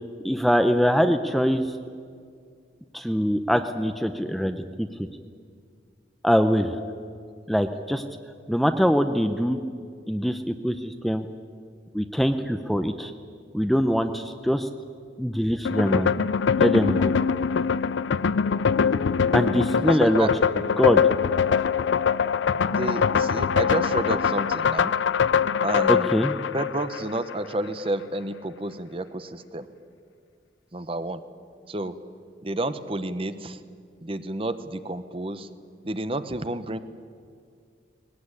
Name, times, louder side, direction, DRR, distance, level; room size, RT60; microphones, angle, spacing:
voice 1, 0.2-1.7 2.9-4.9 6.2-6.8 7.5-8.0 8.5-9.6 10.1-11.3 11.9-13.1 13.5-14.7 15.2-16.2 16.6-17.1 19.3-20.3 20.8-21.0 25.9-26.3, equal, ahead, 8 dB, 0.6 m, -23 dB
sound 1, 15.6-27.4, left 6 dB, 80° left, 0.5 m, -23 dB
voice 2, 19.8-20.3 22.7-24.9 25.6-26.1 26.5-29.7 30.7-31.2 31.7-32.0 32.4-33.6 34.0-35.5 35.8-36.8, right 2 dB, 30° right, 12 dB, 0.9 m, -30 dB
20.0 x 18.5 x 9.7 m, 2.2 s
head